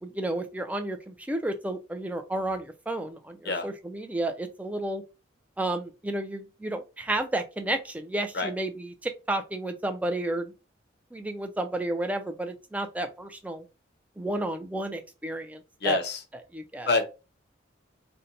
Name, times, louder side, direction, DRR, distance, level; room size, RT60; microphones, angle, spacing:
voice 1, 0.0-5.0 5.6-10.5 11.1-13.7 14.2-16.0 16.5-16.9, right 1 dB, 5° right, 0.3 m, -32 dB
voice 2, 15.8-16.2 16.9-17.0, left 3 dB, 55° left, 0.7 m, -26 dB
2.6 x 2.1 x 3.9 m
head